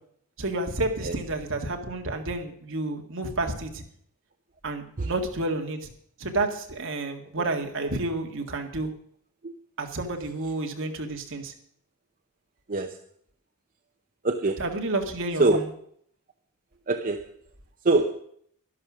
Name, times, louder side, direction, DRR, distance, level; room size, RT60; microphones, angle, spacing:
voice 1, 0.4-3.8 4.6-5.8 6.2-8.9 9.8-11.5 14.6-15.6, right 2 dB, 60° right, 4 dB, 1.9 m, -30 dB
voice 2, 14.2-14.7 15.4-15.6 16.9-17.3 17.8-18.2, right 2 dB, 40° right, 5 dB, 0.8 m, -24 dB
12.0 x 11.5 x 6.2 m, 0.65 s
head